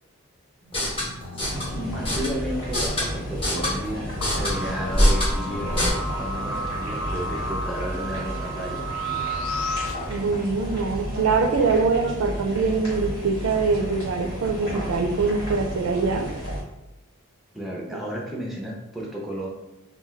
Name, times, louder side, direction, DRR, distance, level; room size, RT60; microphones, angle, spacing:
sound 1, 0.6-5.9, equal, 25° left, 0.7 m, -26 dB
sound 2, 1.4-16.6, equal, 90° left, 1.5 m, -33 dB
voice 1, 1.7-5.9 6.2-8.9 17.5-19.5, equal, ahead, -2 dB, 0.4 m, -32 dB
sound 3, 4.2-9.9, equal, 65° left, 0.4 m, -32 dB
voice 2, 10.1-16.3 17.9-18.0, right 4 dB, 70° right, 5 dB, 0.4 m, -23 dB
2.3 x 2.1 x 3.9 m, 0.96 s
head